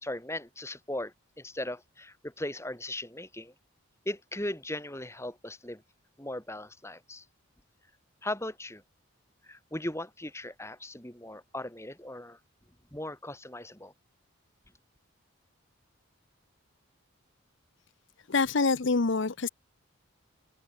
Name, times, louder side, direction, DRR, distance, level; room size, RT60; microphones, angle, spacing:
voice 1, 0.0-3.5 4.1-5.8 6.2-7.3 8.2-8.8 9.4-12.4 12.9-13.9, left 1 dB, 10° left, 3.3 m, -38 dB
voice 2, 18.3-19.5, left 4 dB, 55° left, 0.8 m, -26 dB
head